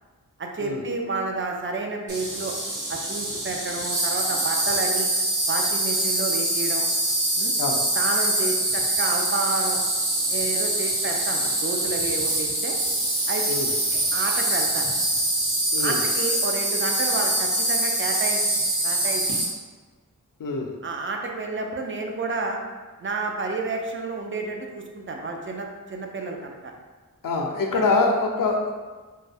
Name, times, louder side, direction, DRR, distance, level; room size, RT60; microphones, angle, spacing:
voice 1, 0.4-2.6 2.9-5.1 5.5-6.8 7.4-7.5 7.9-9.8 10.3-12.8 13.3-13.5 13.9-15.0 15.8-18.4 18.8-19.3 20.8-22.6 23.0-26.6 27.7-27.9, right 3 dB, 40° right, 2 dB, 0.4 m, -30 dB
Insect, 2.1-19.4, right 1 dB, 75° right, 0.9 m, -24 dB
voice 2, 20.4-20.8 27.2-28.7, left 3 dB, 80° left, 2 dB, 0.5 m, -24 dB
2.5 x 2.2 x 3.3 m, 1.3 s
wide cardioid pair, 60°, 32 cm